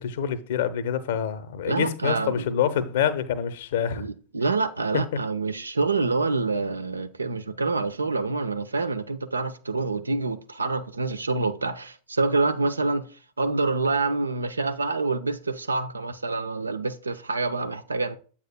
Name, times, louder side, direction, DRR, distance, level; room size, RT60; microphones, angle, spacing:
voice 1, 0.0-4.1 4.9-5.0, left 8 dB, 55° left, 0.8 m, -26 dB
voice 2, 1.6-2.5 4.0-13.1 13.4-18.2, right 3 dB, 75° right, 0.5 m, -27 dB
8.1 x 7.2 x 2.2 m
figure-of-eight pair, 90°, 0 cm